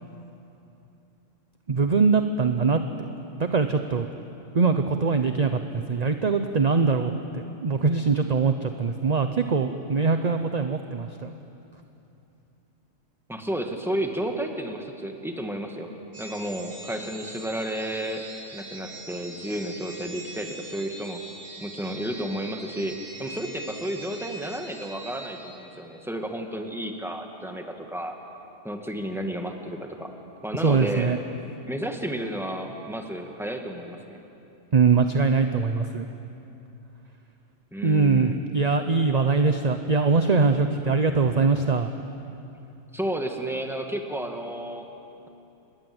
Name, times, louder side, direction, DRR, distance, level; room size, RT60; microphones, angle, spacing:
voice 1, 1.7-2.8 3.4-4.1 4.5-11.3 30.6-31.2 34.7-36.0 37.8-41.9, right 4 dB, 35° right, 7 dB, 0.8 m, -22 dB
voice 2, 13.3-15.9 16.2-18.2 18.5-21.2 21.6-28.1 28.6-30.1 30.4-31.2 31.7-34.2 37.7-38.5 42.9-44.9, right 1 dB, ahead, 3 dB, 2.0 m, -32 dB
sound 1, 16.1-26.0, right 2 dB, 75° right, 3.9 m, -42 dB
28.0 x 21.0 x 8.0 m, 2.8 s
omnidirectional pair, 1.3 m